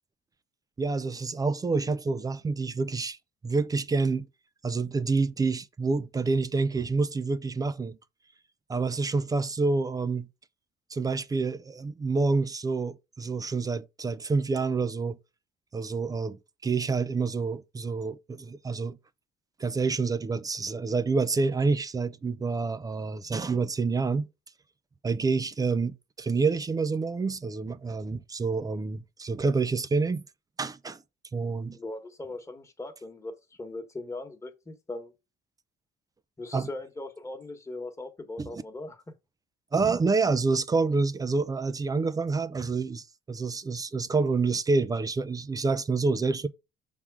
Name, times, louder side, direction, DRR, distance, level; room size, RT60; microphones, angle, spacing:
voice 1, 0.8-3.2 3.4-4.3 4.6-8.0 8.7-10.3 10.9-15.2 15.7-19.0 19.6-24.3 25.0-30.3 30.6-31.0 31.3-31.8 36.5-36.7 38.4-38.6 39.7-46.5, right 4 dB, 20° right, 0.5 m, -28 dB
voice 2, 31.7-33.3 33.6-35.1 36.4-39.1, left 2 dB, 15° left, 1.4 m, -39 dB
5.9 x 3.6 x 4.7 m
cardioid pair, 110°, 17 cm